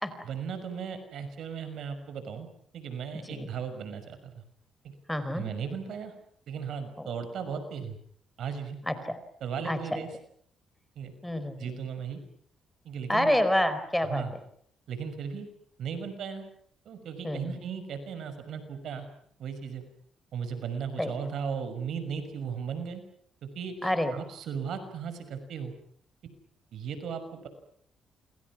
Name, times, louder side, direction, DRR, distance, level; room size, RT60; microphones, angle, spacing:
voice 1, 0.2-2.5 2.7-4.4 4.8-4.9 5.3-6.1 6.5-8.0 8.4-8.8 9.4-10.1 11.0-11.1 11.6-12.2 12.8-13.4 14.1-14.3 14.9-15.5 15.8-16.5 16.9-19.1 19.4-19.8 20.3-23.0 23.4-25.7 26.7-27.5, right 6 dB, 70° right, 10 dB, 5.9 m, -36 dB
voice 2, 5.1-5.5 7.0-7.1 8.9-9.0 9.7-9.8 11.2-11.6 13.1-14.2 17.2-17.5 21.0-21.1 23.8-24.1, left 1 dB, 5° left, 11 dB, 4.5 m, -27 dB
28.5 x 28.0 x 6.1 m, 0.63 s
cardioid pair, 90°, 0 cm